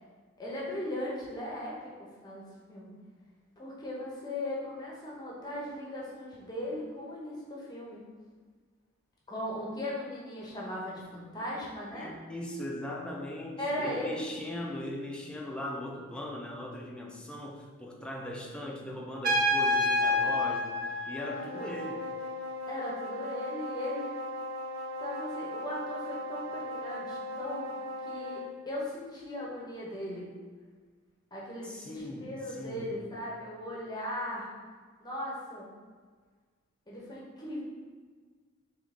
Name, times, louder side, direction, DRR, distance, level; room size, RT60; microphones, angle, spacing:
voice 1, 0.4-2.9 3.6-8.1 9.3-12.1 13.6-14.3 22.7-24.0 25.0-30.3 31.3-34.5 35.0-35.7 36.9-37.6, left 1 dB, 20° left, -5 dB, 0.8 m, -38 dB
voice 2, 11.9-22.1 31.6-33.0, left 1 dB, 5° left, -1 dB, 0.4 m, -39 dB
Trumpet, 19.2-21.9, left 1 dB, 45° right, 0.7 m, -28 dB
sound 1, 21.1-28.6, left 1 dB, 85° right, 0.8 m, -38 dB
3.7 x 3.0 x 3.6 m, 1.5 s
head